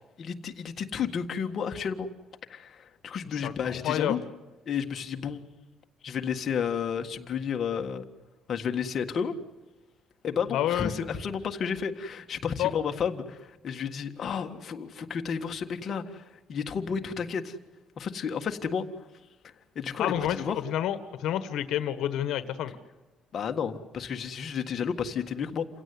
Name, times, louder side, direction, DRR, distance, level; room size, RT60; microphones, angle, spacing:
voice 1, 0.2-2.1 2.5-4.2 4.6-5.4 6.0-8.0 8.5-9.4 10.2-17.6 18.0-18.9 19.4-20.6 23.3-25.7, left 7 dB, 35° left, 5 dB, 1.7 m, -32 dB
voice 2, 3.3-4.2 10.5-10.9 12.6-12.7 20.0-22.7, left 11 dB, 65° left, 11 dB, 1.5 m, -29 dB
28.5 x 17.0 x 9.6 m, 1.1 s
cardioid pair, 165°, 0 cm